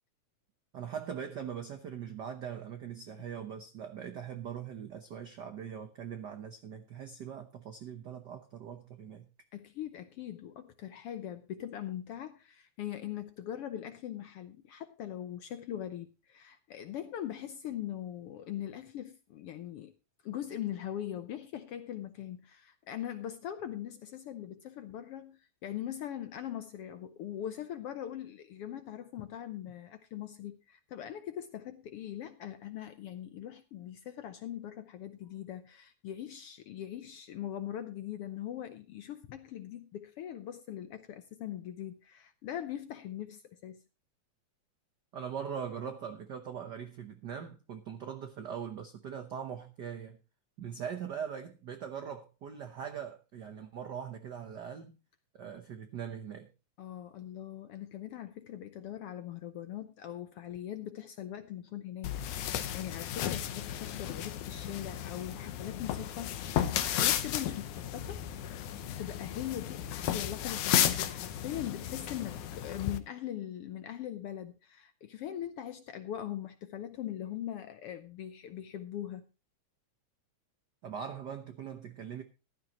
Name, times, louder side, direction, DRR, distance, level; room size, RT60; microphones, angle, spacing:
voice 1, 0.7-9.3 45.1-50.2 50.6-55.0 55.3-56.5 80.8-82.2, right 8 dB, 80° right, 0.9 m, -41 dB
voice 2, 9.5-19.9 20.2-43.8 56.8-68.3 69.0-79.3, left 11 dB, 70° left, 1.4 m, -41 dB
sound 1, 62.0-73.0, left 11 dB, 90° left, 2.4 m, -33 dB
15.0 x 12.5 x 3.0 m
omnidirectional pair, 3.4 m